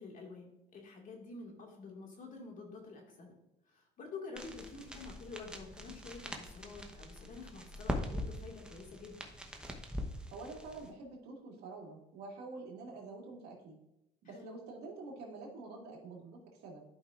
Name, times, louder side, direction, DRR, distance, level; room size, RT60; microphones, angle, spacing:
voice 1, 0.0-3.3 3.7-9.2 14.2-14.6, left 4 dB, 50° left, 1 dB, 2.0 m, -49 dB
sound 1, 4.4-10.9, equal, 5° right, 1.0 m, -42 dB
voice 2, 10.3-13.8 14.2-16.8, right 3 dB, 80° right, -1 dB, 2.0 m, -47 dB
12.0 x 5.4 x 2.5 m, 0.90 s
cardioid pair, 110°, 17 cm